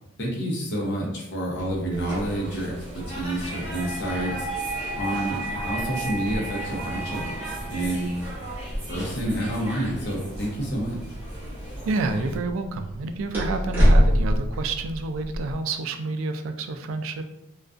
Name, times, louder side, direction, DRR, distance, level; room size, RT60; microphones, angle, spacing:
voice 1, 0.2-4.5 5.0-8.2 8.9-11.0, right 1 dB, 55° left, -2 dB, 0.7 m, -29 dB
sound 1, 1.6-15.5, equal, 10° right, 0.8 m, -29 dB
sound 2, 1.9-12.4, right 1 dB, 35° right, 1.0 m, -38 dB
sound 3, 3.4-8.5, right 3 dB, 20° left, 0.6 m, -34 dB
voice 2, 11.8-17.2, right 3 dB, 80° right, 8 dB, 0.3 m, -29 dB
2.4 x 2.2 x 2.4 m, 0.87 s
head